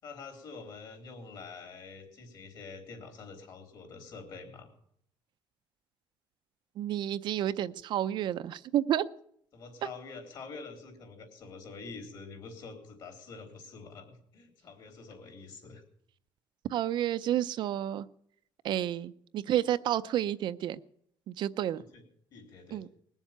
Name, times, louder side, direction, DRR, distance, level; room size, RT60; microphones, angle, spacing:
voice 1, 0.0-4.7 9.5-15.8 21.7-22.0 22.3-22.8, left 4 dB, 50° left, 5 dB, 3.8 m, -46 dB
voice 2, 6.8-9.1 16.7-18.1 18.6-20.8 21.3-21.8 22.7-22.9, right 11 dB, 55° right, 12 dB, 0.6 m, -30 dB
20.5 x 7.3 x 9.1 m, 0.68 s
cardioid pair, 165°, 9 cm